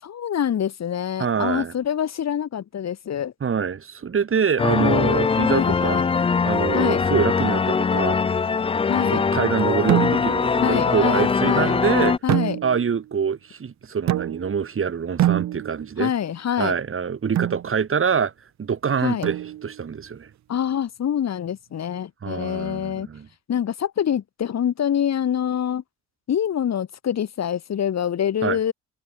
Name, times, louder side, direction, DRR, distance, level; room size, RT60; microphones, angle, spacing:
voice 1, 0.0-3.3 4.8-5.2 5.5-6.1 6.7-7.0 8.9-9.2 10.6-11.8 12.2-12.6 16.0-16.8 19.0-19.3 20.5-23.1 23.5-25.8 26.3-28.7, left 9 dB, 60° left, 5.6 m, -25 dB
voice 2, 1.2-1.7 3.4-6.0 6.5-8.2 9.1-12.2 12.6-16.1 16.6-18.3 18.6-19.4 19.6-20.3 22.2-23.3 28.4-28.6, right 6 dB, 45° right, 5.9 m, -25 dB
sound 1, 4.6-12.2, left 5 dB, 20° left, 0.4 m, -22 dB
sound 2, 9.9-10.5 12.3-13.0 14.1-14.7 15.2-16.0 17.4-17.7 19.2-19.8, right 13 dB, 65° right, 0.8 m, -25 dB
cardioid pair, 90°, 30 cm